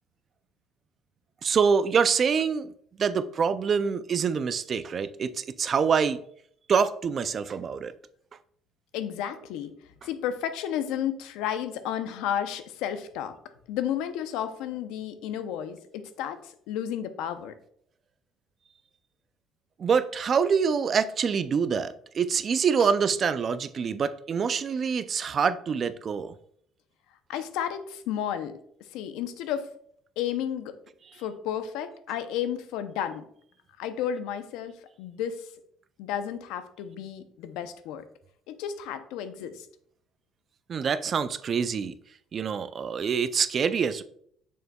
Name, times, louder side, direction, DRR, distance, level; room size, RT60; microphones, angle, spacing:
voice 1, 1.4-2.7 3.0-6.2 6.7-7.9 19.8-26.3 40.7-41.9 42.3-44.0, right 6 dB, 35° right, 0.3 m, -25 dB
voice 2, 8.9-9.7 10.0-13.3 13.7-17.5 22.8-22.9 27.3-28.6 28.9-29.7 30.2-30.7 31.2-33.2 33.8-35.5 36.0-38.0 38.5-39.7, left 9 dB, 90° left, 0.6 m, -32 dB
6.7 x 6.4 x 2.3 m
cardioid pair, 135°, 0 cm